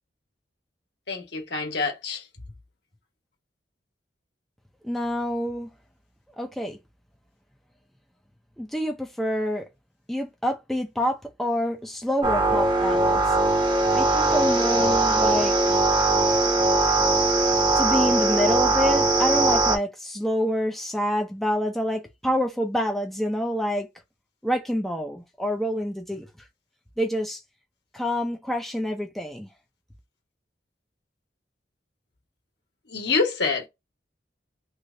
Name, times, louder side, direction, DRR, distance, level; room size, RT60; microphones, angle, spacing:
voice 1, 1.1-2.2 32.9-33.7, left 4 dB, 65° left, 1.5 m, -26 dB
voice 2, 4.8-5.7 6.4-6.8 8.6-9.6 10.1-13.2 13.9-15.5 17.8-23.9 24.4-26.3 27.0-27.4 27.9-29.5, equal, ahead, 0.6 m, -27 dB
sound 1, 12.2-19.8, right 2 dB, 25° right, 0.9 m, -21 dB
3.3 x 3.2 x 2.6 m
head